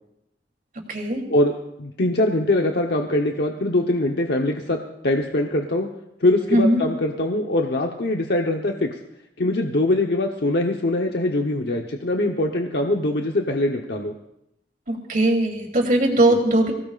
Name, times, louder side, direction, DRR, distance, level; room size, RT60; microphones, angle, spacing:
voice 1, 0.9-1.2 6.5-6.8 14.9-16.7, right 1 dB, 50° right, 0 dB, 3.2 m, -19 dB
voice 2, 1.8-5.9 6.2-8.9 9.4-14.1 16.3-16.4, left 1 dB, 65° left, 2 dB, 1.0 m, -22 dB
24.0 x 16.5 x 2.5 m, 0.82 s
head